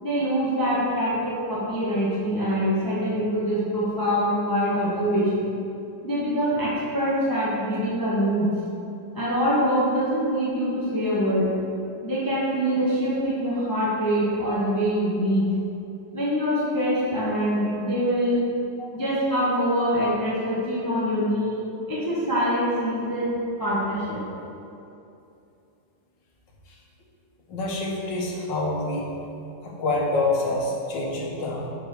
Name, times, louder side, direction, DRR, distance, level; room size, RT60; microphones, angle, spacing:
voice 1, 0.0-5.5 6.0-8.5 9.1-11.5 12.0-15.5 16.1-18.4 18.9-21.6 21.9-24.2, equal, 15° left, -7 dB, 0.8 m, -24 dB
voice 2, 27.5-29.1 29.6-31.7, left 2 dB, 80° left, -2 dB, 1.8 m, -27 dB
5.3 x 5.1 x 6.2 m, 2.7 s
omnidirectional pair, 2.0 m